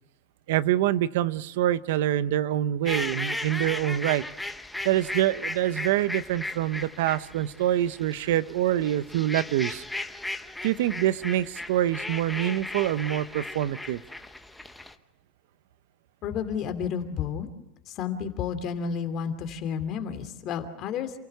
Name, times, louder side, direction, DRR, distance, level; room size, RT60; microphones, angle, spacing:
voice 1, 0.5-4.2 4.8-9.8 10.6-14.0, right 13 dB, 80° right, 16 dB, 0.8 m, -25 dB
sound 1, 2.9-14.9, left 2 dB, 5° left, 1.0 m, -36 dB
voice 2, 16.2-17.5 17.9-21.1, left 7 dB, 40° left, 8 dB, 2.7 m, -31 dB
28.0 x 16.5 x 6.8 m, 0.96 s
supercardioid pair, 150°, 0 cm